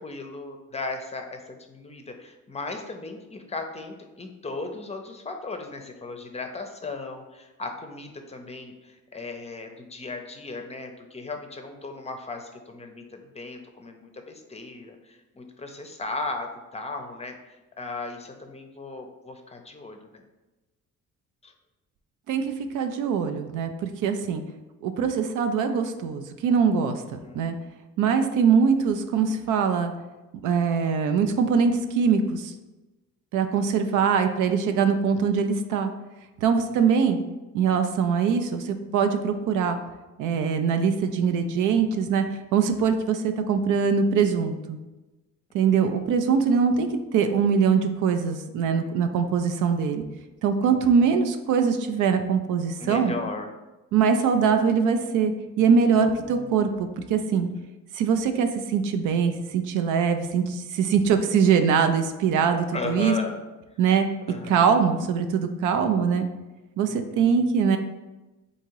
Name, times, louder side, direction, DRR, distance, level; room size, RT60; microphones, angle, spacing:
voice 1, 0.0-17.3 17.8-20.2 21.4-21.5 27.0-27.5 33.5-34.1 36.7-37.1 45.7-46.1 50.8-51.1 52.8-53.5 55.6-56.6 62.7-63.4 64.3-64.7 66.9-67.5, left 3 dB, 20° left, 4 dB, 0.5 m, -37 dB
voice 2, 22.3-24.4 24.8-27.6 28.0-29.9 30.4-32.5 33.3-35.9 36.4-37.2 37.5-39.8 40.2-42.2 42.5-44.8 45.5-50.0 50.4-53.1 53.9-57.5 58.0-63.1 63.8-64.1 64.5-66.3 66.8-67.8, right 6 dB, 85° right, 7 dB, 0.5 m, -22 dB
3.7 x 2.8 x 4.6 m, 1.1 s
cardioid pair, 90°, 30 cm